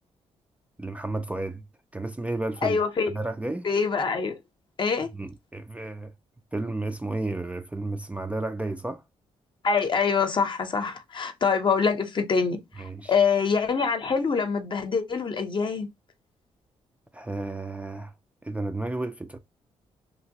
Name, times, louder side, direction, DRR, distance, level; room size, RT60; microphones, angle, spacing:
voice 1, 0.8-1.6 1.9-2.8 3.1-3.7 5.1-6.1 6.5-9.0 12.8-13.2 17.1-18.1 18.4-19.4, right 2 dB, 10° right, 0.4 m, -32 dB
voice 2, 2.6-3.1 3.6-4.3 4.8-5.1 9.6-12.6 13.1-15.9, left 5 dB, 45° left, 0.7 m, -24 dB
2.9 x 2.5 x 2.8 m
cardioid pair, 85°, 12 cm